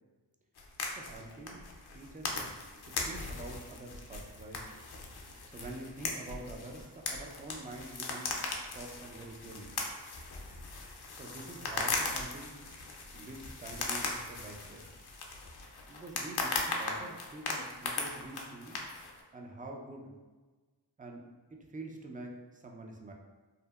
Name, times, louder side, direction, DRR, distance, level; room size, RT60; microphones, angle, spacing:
sound 1, 0.5-19.2, left 3 dB, 65° left, 0.5 m, -39 dB
voice 1, 1.0-1.6 1.9-2.4 3.0-4.6 5.5-9.8 11.1-12.6 13.1-14.9 15.9-18.8 19.3-20.1 21.0-21.2 21.5-23.1, right 2 dB, 20° right, 1 dB, 0.3 m, -46 dB
2.7 x 2.0 x 2.2 m, 1.3 s
cardioid pair, 45°, 43 cm